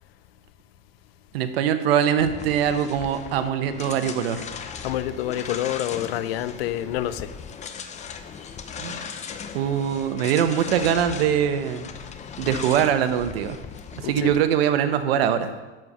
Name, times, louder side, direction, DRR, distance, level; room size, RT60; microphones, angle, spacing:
voice 1, 1.3-4.5 8.8-9.0 9.5-11.9 12.4-13.6 14.0-15.5, right 9 dB, 90° right, 0.9 m, -22 dB
sound 1, 2.2-14.4, left 6 dB, 25° left, 0.7 m, -38 dB
voice 2, 4.8-7.3 14.0-14.3, left 12 dB, 90° left, 0.6 m, -27 dB
7.7 x 7.3 x 5.5 m
supercardioid pair, 130°, 29 cm